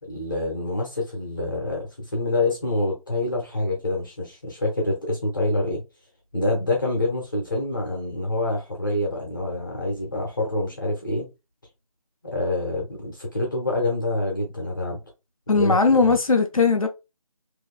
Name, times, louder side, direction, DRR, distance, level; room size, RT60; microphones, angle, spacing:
voice 1, 0.0-5.8 6.3-11.3 12.2-15.0 15.5-16.2, left 2 dB, 35° left, 1.1 m, -26 dB
voice 2, 15.5-16.9, left 4 dB, 70° left, 0.8 m, -19 dB
4.0 x 3.0 x 2.3 m
figure-of-eight pair, 175°, 19 cm